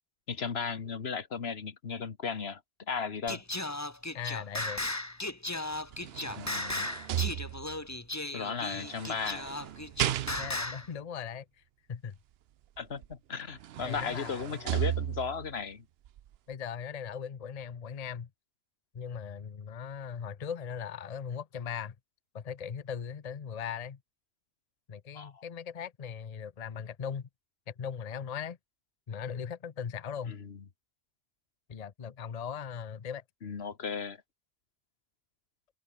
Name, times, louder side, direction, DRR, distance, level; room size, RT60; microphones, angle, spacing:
voice 1, 0.3-2.6 2.9-3.4 6.4-6.9 8.3-9.5 12.8-15.8 25.1-25.4 30.3-30.6 33.4-34.2, left 5 dB, 75° left, 1.6 m, -36 dB
Singing, 3.3-10.9, left 2 dB, 15° left, 1.3 m, -36 dB
voice 2, 4.1-4.8 8.7-8.8 10.4-11.6 11.9-12.2 13.8-14.6 16.5-18.3 18.9-21.9 22.3-24.0 24.9-27.3 27.7-28.6 29.1-30.4 31.7-33.2, left 7 dB, 40° left, 0.8 m, -39 dB
sound 1, 5.7-7.9 8.8-10.8 13.0-13.1 13.5-15.5 16.1-16.2, right 12 dB, 75° right, 0.8 m, -35 dB
open air
omnidirectional pair, 1.1 m